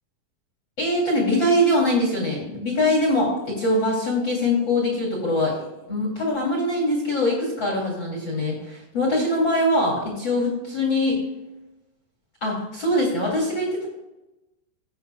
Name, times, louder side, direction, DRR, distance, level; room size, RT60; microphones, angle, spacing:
voice 1, 0.8-5.5 5.9-11.2 12.4-13.9, left 1 dB, 35° left, -3 dB, 2.5 m, -23 dB
15.0 x 8.6 x 2.3 m, 0.98 s
omnidirectional pair, 4.2 m